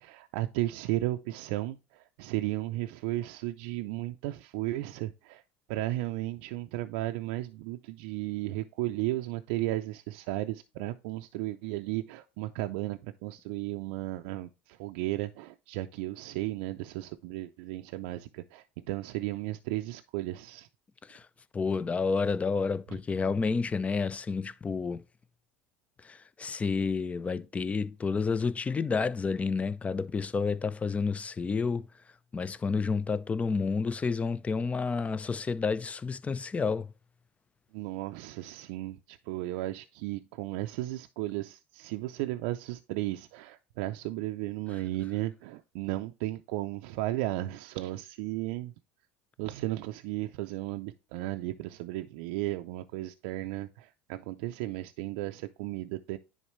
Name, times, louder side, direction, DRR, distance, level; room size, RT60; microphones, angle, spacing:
voice 1, 0.0-5.4 5.7-20.7 37.7-48.7 49.4-56.2, right 16 dB, 70° right, 0.5 m, -34 dB
voice 2, 21.5-25.0 26.0-31.9 32.3-36.9, left 4 dB, 20° left, 0.6 m, -30 dB
10.0 x 4.3 x 3.1 m
hypercardioid pair, 80°, 6 cm